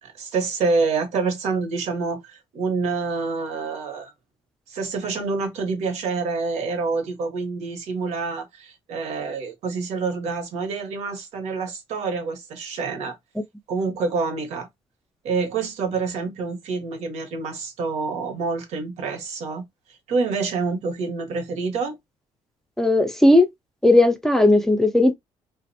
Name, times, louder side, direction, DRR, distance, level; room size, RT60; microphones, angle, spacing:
voice 1, 0.0-4.1 4.7-13.2 13.7-14.7 15.2-19.6 20.1-22.0, right 4 dB, 80° right, 0.8 m, -27 dB
voice 2, 22.8-23.5 23.8-25.1, left 1 dB, 5° left, 0.4 m, -16 dB
2.4 x 2.0 x 2.6 m
cardioid pair, 110°, 11 cm